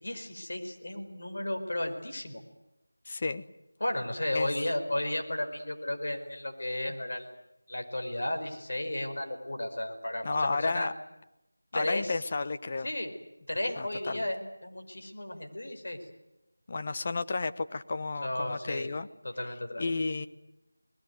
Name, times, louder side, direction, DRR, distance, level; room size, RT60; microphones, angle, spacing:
voice 1, 0.0-2.4 3.8-7.3 7.7-10.9 11.7-12.2 12.8-13.1 13.5-16.0 18.2-18.9 19.4-19.9, left 1 dB, 55° left, 4 dB, 4.9 m, -34 dB
voice 2, 3.0-3.4 4.3-4.5 10.2-10.9 11.7-12.9 13.8-14.3 16.7-19.1 19.8-20.3, left 3 dB, 30° left, 10 dB, 1.0 m, -32 dB
26.0 x 20.5 x 9.5 m, 0.92 s
figure-of-eight pair, 170°, 0 cm